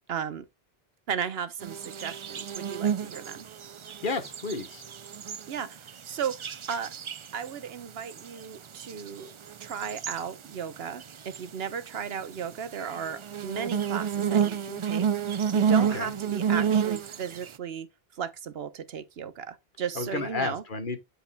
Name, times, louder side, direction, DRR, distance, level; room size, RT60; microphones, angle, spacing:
voice 1, 0.1-0.5 1.1-3.5 5.5-6.4 6.7-6.9 7.3-9.3 9.6-17.9 18.1-20.6, right 7 dB, 75° right, 1.1 m, -35 dB
sound 1, 1.6-5.5 5.9-7.5 8.0-8.4 8.7-9.1 9.5-10.3 11.0-11.4 12.7-17.5, right 7 dB, 55° right, 0.3 m, -29 dB
voice 2, 4.0-4.8 15.9-16.1 20.0-21.0, left 3 dB, 55° left, 1.3 m, -31 dB
11.5 x 4.8 x 2.2 m
omnidirectional pair, 1.0 m